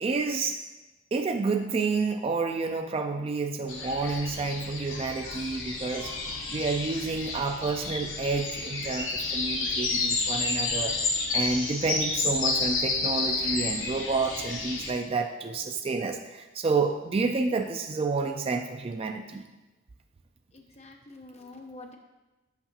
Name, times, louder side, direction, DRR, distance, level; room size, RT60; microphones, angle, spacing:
voice 1, 0.0-0.6 1.1-6.1 6.5-11.0 11.3-19.4, right 4 dB, 30° right, 5 dB, 0.3 m, -29 dB
sound 1, 3.7-14.9, left 3 dB, 65° left, 1.0 m, -30 dB
voice 2, 20.5-22.0, left 2 dB, 30° left, 2 dB, 0.7 m, -46 dB
8.3 x 5.6 x 2.8 m, 1.1 s
head